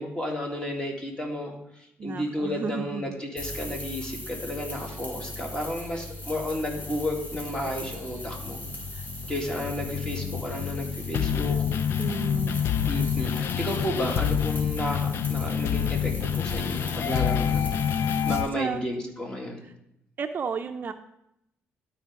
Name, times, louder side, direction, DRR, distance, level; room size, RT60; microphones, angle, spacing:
voice 1, 0.0-8.6 9.3-11.7 12.8-17.7 18.3-19.7, left 1 dB, 20° left, 0 dB, 1.9 m, -32 dB
voice 2, 2.0-3.0 8.9-9.0 12.0-12.6 18.1-18.3 18.6-18.8 20.2-20.9, right 5 dB, 45° right, 8 dB, 0.5 m, -33 dB
sound 1, 3.4-18.4, left 1 dB, 40° left, 3.0 m, -39 dB
sound 2, 6.8-18.5, left 8 dB, 65° left, 0.4 m, -28 dB
12.0 x 4.5 x 3.6 m, 0.81 s
cardioid pair, 95°, 5 cm